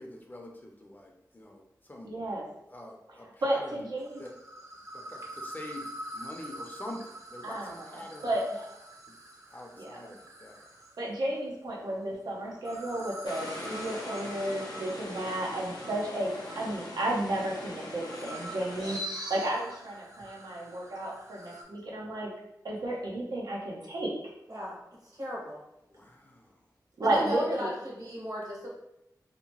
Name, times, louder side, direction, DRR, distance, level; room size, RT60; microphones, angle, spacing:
voice 1, 0.0-1.6 1.9-2.1 2.7-3.9 4.2-4.3 4.9-8.4 9.1-9.2 9.5-10.6 25.9-26.5, left 1 dB, 25° left, 1 dB, 0.5 m, -45 dB
voice 2, 2.0-2.5 3.1-4.2 7.4-8.7 9.8-10.0 11.0-22.3 22.6-24.1 27.0-27.7, right 1 dB, 90° right, -3 dB, 0.6 m, -33 dB
sound 1, 4.0-11.1 12.5-21.6, right 1 dB, 45° right, 0.6 m, -46 dB
sound 2, 13.2-19.0, left 1 dB, 90° left, 0.6 m, -41 dB
voice 3, 24.5-25.6 27.0-28.7, equal, 65° right, -4 dB, 1.0 m, -36 dB
2.8 x 2.1 x 2.9 m, 0.84 s
wide cardioid pair, 60°, 7 cm